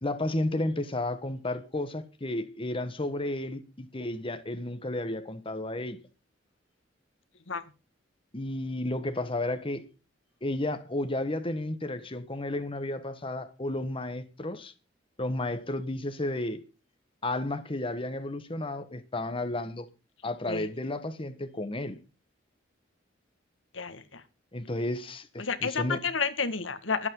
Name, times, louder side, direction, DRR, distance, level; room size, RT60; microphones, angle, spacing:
voice 1, 0.0-6.0 8.3-9.9 10.4-14.7 15.2-16.6 17.2-19.9 20.2-22.0 24.5-26.0, left 1 dB, 30° left, 1.5 m, -32 dB
voice 2, 23.7-24.2 25.4-27.1, left 5 dB, 80° left, 1.9 m, -30 dB
23.5 x 8.8 x 3.9 m
head